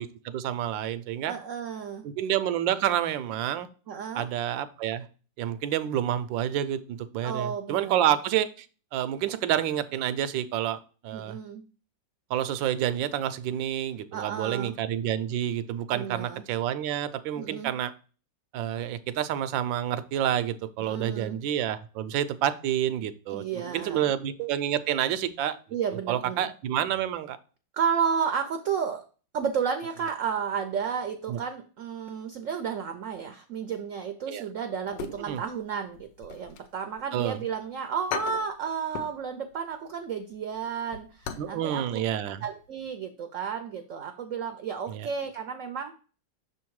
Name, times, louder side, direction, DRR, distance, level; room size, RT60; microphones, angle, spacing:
voice 1, 0.0-1.3 2.0-3.7 4.1-5.1 5.4-8.7 8.9-11.4 12.3-17.9 18.5-25.6 26.1-27.4 31.3-31.4 34.3-34.4 35.3-35.4 37.1-37.4 41.4-42.4 44.9-45.1, right 11 dB, 90° right, 12 dB, 1.3 m, -29 dB
voice 2, 1.3-2.1 3.9-4.3 7.2-8.1 11.1-11.6 14.1-14.7 15.9-16.4 17.4-17.7 20.8-21.4 23.3-24.0 25.7-26.5 27.7-29.1 29.3-41.8 42.4-45.9, right 7 dB, 70° right, 7 dB, 0.7 m, -32 dB
sound 1, 34.8-35.6 35.9-37.3 37.7-37.8 38.1-39.2 39.5-39.7 40.1-41.6 41.8-41.9 42.4-42.7 42.9-43.0, left 8 dB, 80° left, 1.3 m, -38 dB
6.4 x 3.5 x 4.6 m, 0.37 s
omnidirectional pair, 2.0 m